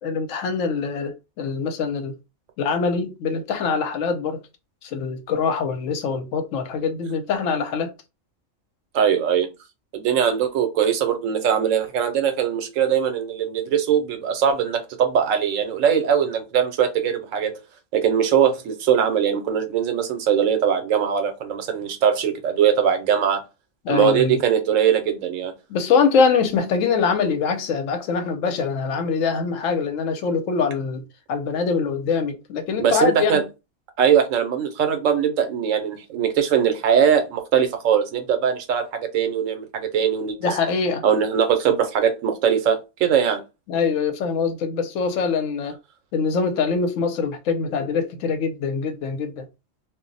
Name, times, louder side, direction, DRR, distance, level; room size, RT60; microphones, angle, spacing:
voice 1, 0.0-2.2 2.6-4.4 4.8-7.9 23.8-24.4 25.7-33.4 40.4-41.0 43.7-45.8 46.1-49.5, left 5 dB, 80° left, 1.0 m, -23 dB
voice 2, 8.9-9.5 9.9-17.6 17.9-23.4 23.9-25.5 32.8-33.4 34.0-40.5 41.0-43.4, right 8 dB, 85° right, 1.0 m, -21 dB
2.4 x 2.0 x 3.8 m
omnidirectional pair, 1.3 m